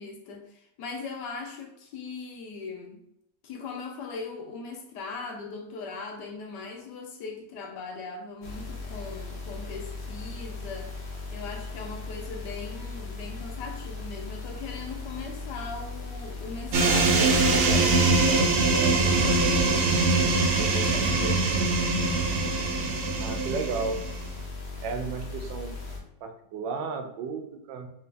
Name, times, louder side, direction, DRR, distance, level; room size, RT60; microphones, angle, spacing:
voice 1, 0.0-3.0 3.4-10.9 11.3-20.1 20.5-21.9, left 4 dB, 75° left, 2 dB, 1.2 m, -39 dB
sound 1, 8.4-26.0, left 3 dB, 55° left, 0.8 m, -38 dB
sound 2, 16.7-24.3, right 3 dB, 65° right, 0.8 m, -23 dB
voice 2, 23.2-24.0 24.8-25.7 26.2-27.9, right 4 dB, 90° right, 5 dB, 1.3 m, -33 dB
3.3 x 2.7 x 3.3 m, 0.76 s
omnidirectional pair, 1.9 m